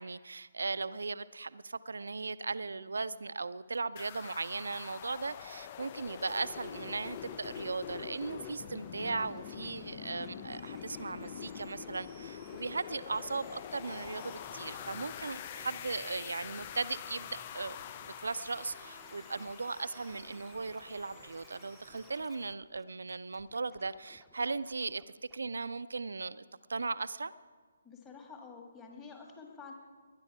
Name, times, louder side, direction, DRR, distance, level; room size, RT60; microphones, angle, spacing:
voice 1, 0.0-17.8 18.2-25.0 25.3-26.4 26.7-27.3, right 4 dB, 65° right, 15 dB, 0.5 m, -37 dB
sound 1, 4.0-22.5, left 10 dB, 30° left, 0.4 m, -46 dB
Scratching (performance technique), 5.9-7.7 7.9-8.5 9.0-9.8 10.0-25.0 25.3-25.4, right 2 dB, ahead, 0.9 m, -62 dB
sound 2, 6.6-22.1, right 7 dB, 30° right, 0.8 m, -58 dB
voice 2, 27.8-29.7, left 5 dB, 15° left, 2 dB, 1.8 m, -49 dB
20.0 x 10.5 x 4.8 m, 1.5 s
figure-of-eight pair, 140°, 0 cm